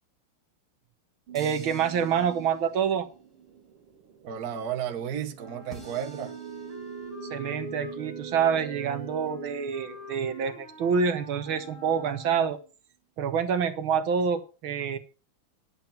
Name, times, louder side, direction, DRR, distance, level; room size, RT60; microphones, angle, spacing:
sound 1, 1.3-2.9 5.7-7.3, right 1 dB, ahead, 3.1 m, -51 dB
voice 1, 1.3-3.1 7.2-12.6 13.2-15.0, right 7 dB, 75° right, 1.7 m, -27 dB
sound 2, 1.3-11.0, right 8 dB, 90° right, 2.1 m, -44 dB
voice 2, 4.2-6.4, right 9 dB, 50° right, 1.4 m, -33 dB
Wind instrument woodwind instrument, 5.4-12.7, left 3 dB, 35° right, 3.0 m, -45 dB
10.5 x 7.4 x 5.7 m
omnidirectional pair, 2.4 m